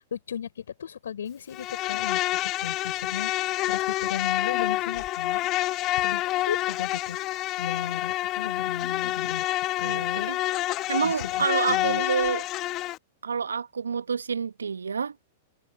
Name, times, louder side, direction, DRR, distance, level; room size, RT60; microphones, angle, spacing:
voice 1, 0.0-3.3 3.6-5.4 6.0-9.4 9.8-10.3 11.0-12.0, left 8 dB, 75° left, 5.7 m, -36 dB
Insect, 1.5-13.0, left 16 dB, 35° left, 0.9 m, -28 dB
voice 2, 9.8-10.4 10.9-12.4 13.2-15.1, right 6 dB, 80° right, 1.0 m, -28 dB
figure-of-eight pair, 100°, 0 cm